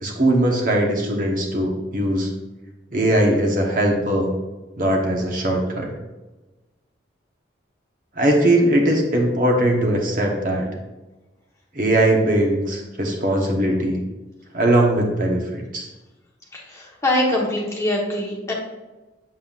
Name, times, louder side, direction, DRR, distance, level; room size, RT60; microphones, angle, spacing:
voice 1, 0.0-2.3 2.9-4.3 4.8-5.9 8.2-10.7 11.7-14.0 14.5-15.9, right 1 dB, 45° right, 1 dB, 1.1 m, -20 dB
voice 2, 16.5-18.5, left 1 dB, 15° left, -3 dB, 1.2 m, -23 dB
7.6 x 7.1 x 2.5 m, 1.1 s
head